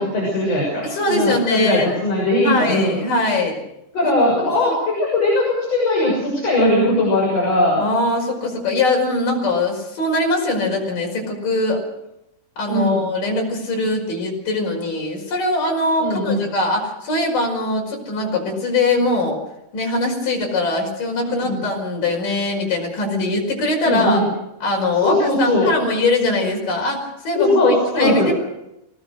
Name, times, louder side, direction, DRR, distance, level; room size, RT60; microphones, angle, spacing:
voice 1, 0.0-3.0 3.9-7.8 12.7-13.0 16.0-16.4 21.4-21.6 23.8-24.2 25.0-25.9 27.4-28.3, left 1 dB, 50° left, -3 dB, 8.0 m, -19 dB
voice 2, 0.8-1.9 2.4-3.6 4.5-4.8 7.8-11.8 12.6-19.4 19.7-24.2 24.6-28.3, left 2 dB, 80° left, -2 dB, 6.9 m, -22 dB
25.0 x 19.0 x 6.5 m, 0.85 s
omnidirectional pair, 3.7 m